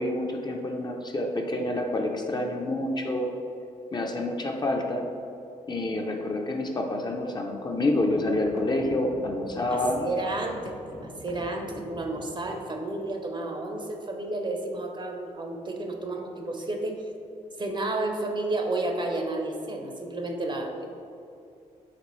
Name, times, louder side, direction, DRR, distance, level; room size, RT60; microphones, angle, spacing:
voice 1, 0.0-3.3 3.9-5.1 5.7-10.0, left 1 dB, 30° left, 2 dB, 0.5 m, -28 dB
sound 1, 7.5-7.6 8.0-12.6, left 2 dB, 70° left, 0.9 m, -42 dB
voice 2, 9.7-10.8 11.0-17.0 17.6-20.9, right 2 dB, 30° right, 3 dB, 0.6 m, -31 dB
4.1 x 3.5 x 3.0 m, 2.6 s
supercardioid pair, 50°, 15 cm